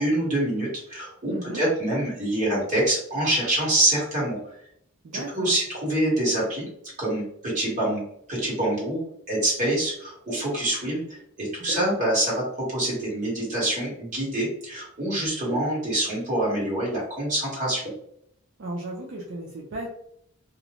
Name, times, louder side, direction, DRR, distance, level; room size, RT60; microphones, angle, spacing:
voice 1, 0.0-4.4 5.3-6.7 7.0-8.0 8.3-11.0 11.4-17.9, right 1 dB, 35° right, -6 dB, 1.3 m, -25 dB
voice 2, 1.3-1.7 5.0-5.5 18.6-19.9, right 1 dB, 60° right, -2 dB, 0.4 m, -35 dB
2.5 x 2.0 x 2.9 m, 0.70 s
head